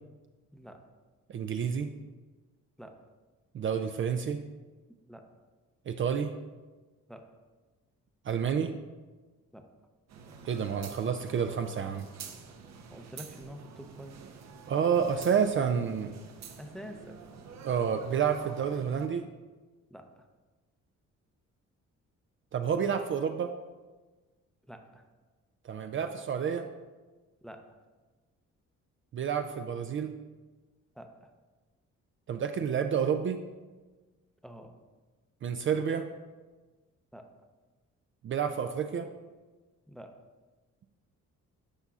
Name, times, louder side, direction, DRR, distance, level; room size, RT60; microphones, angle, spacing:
voice 1, 0.5-0.9 2.8-3.0 5.1-5.3 7.1-7.3 9.5-9.7 12.9-14.2 16.5-17.2 19.9-20.3 24.7-25.0 27.4-27.7 31.0-31.3 34.4-34.7 37.1-37.3 39.9-40.2, equal, ahead, 5 dB, 0.6 m, -47 dB
voice 2, 1.3-1.9 3.5-4.4 5.9-6.3 8.3-8.7 10.5-12.1 14.7-16.2 17.6-19.3 22.5-23.5 25.6-26.6 29.1-30.2 32.3-33.4 35.4-36.0 38.2-39.1, right 7 dB, 40° right, 7 dB, 0.4 m, -29 dB
sound 1, 10.1-19.1, right 5 dB, 60° right, 0.7 m, -48 dB
9.9 x 5.4 x 2.4 m, 1.3 s
cardioid pair, 90°, 30 cm